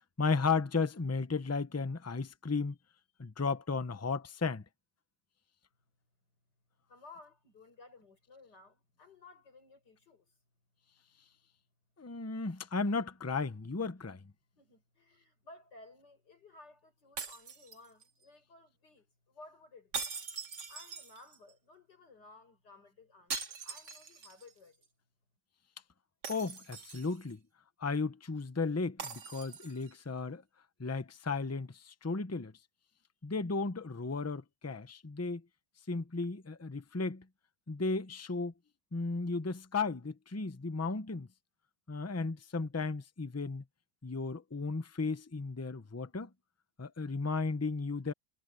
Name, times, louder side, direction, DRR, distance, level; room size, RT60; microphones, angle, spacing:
voice 1, 0.2-2.8 3.2-4.6 12.0-14.2 26.3-27.4 27.8-30.4 30.8-32.5 33.2-35.4 35.9-37.2 37.7-38.5 38.9-41.3 41.9-43.6 44.0-46.3 46.8-48.1, left 4 dB, 20° left, 0.4 m, -34 dB
voice 2, 6.9-10.4 14.6-20.1 20.7-24.9, left 3 dB, 70° left, 7.1 m, -57 dB
sound 1, 17.2-18.2 19.9-21.5 23.3-24.5 24.8-24.9 26.2-27.3 29.0-29.9, right 5 dB, 70° right, 2.8 m, -42 dB
omnidirectional pair, 1.9 m